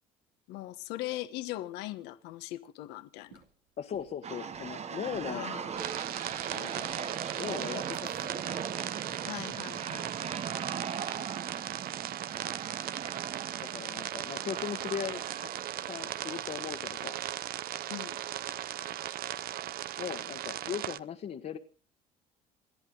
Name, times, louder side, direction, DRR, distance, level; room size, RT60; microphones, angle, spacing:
voice 1, 0.5-3.4 5.3-5.9 9.2-10.3 17.9-18.2, left 16 dB, 80° left, 1.2 m, -40 dB
sound 1, 3.2-13.3, right 7 dB, 80° right, 2.8 m, -61 dB
voice 2, 3.8-5.5 6.5-6.9 7.4-8.6 13.6-15.5 15.8-17.2 20.0-21.6, left 8 dB, 50° left, 1.5 m, -39 dB
sound 2, 4.2-17.3, right 7 dB, 40° right, 1.1 m, -40 dB
sound 3, 5.8-21.0, right 12 dB, 60° right, 0.7 m, -37 dB
28.5 x 11.0 x 3.9 m
supercardioid pair, 80°, 17 cm